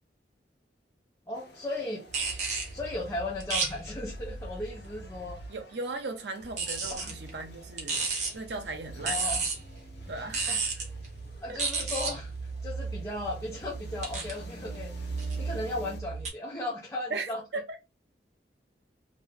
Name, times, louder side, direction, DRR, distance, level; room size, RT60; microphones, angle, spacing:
sound 1, 1.3-16.0, left 1 dB, 80° left, 0.7 m, -52 dB
voice 1, 1.3-2.0 2.7-5.4 6.9-7.2 9.0-9.4 10.5-10.6 11.4-12.3 12.6-14.9 15.4-17.4, left 2 dB, 15° left, 0.7 m, -36 dB
sound 2, 2.1-5.6 6.4-16.3, right 4 dB, 40° right, 0.9 m, -34 dB
voice 2, 5.5-9.4 10.1-10.8 11.5-11.6 17.1-17.8, right 3 dB, 75° right, 0.7 m, -38 dB
2.7 x 2.6 x 3.2 m
head